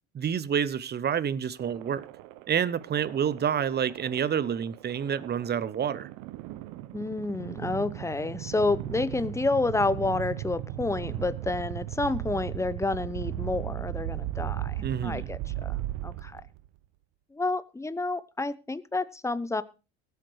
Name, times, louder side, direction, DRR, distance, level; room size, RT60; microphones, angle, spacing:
voice 1, 0.1-2.0 2.5-6.1 14.8-15.3, right 8 dB, 30° right, 0.9 m, -28 dB
sound 1, 1.6-16.7, right 14 dB, 60° right, 0.8 m, -37 dB
voice 2, 6.9-15.7 16.0-16.4 17.3-19.6, left 3 dB, 10° left, 0.9 m, -29 dB
22.0 x 8.2 x 3.2 m
hypercardioid pair, 70°, 33 cm